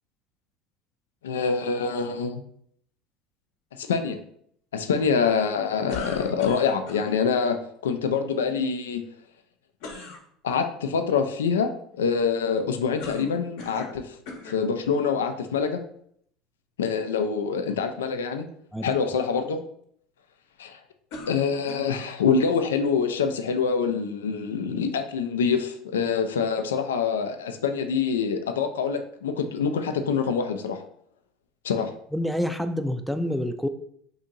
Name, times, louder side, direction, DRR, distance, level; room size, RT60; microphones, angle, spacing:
voice 1, 1.2-2.4 3.7-4.2 4.7-7.6 7.8-9.0 10.4-14.2 14.4-15.8 16.8-18.5 18.8-19.6 20.6-20.8 21.3-30.8 31.6-31.9, left 6 dB, 85° left, 7 dB, 0.3 m, -25 dB
sound 1, 5.9-7.1 9.8-10.2 13.0-14.0 14.3-14.6 15.4-15.5 21.1-22.0, left 4 dB, 70° left, 0.8 m, -39 dB
voice 2, 32.1-33.7, equal, ahead, 7 dB, 0.4 m, -27 dB
2.7 x 2.6 x 3.7 m, 0.66 s
hypercardioid pair, 80°, 0 cm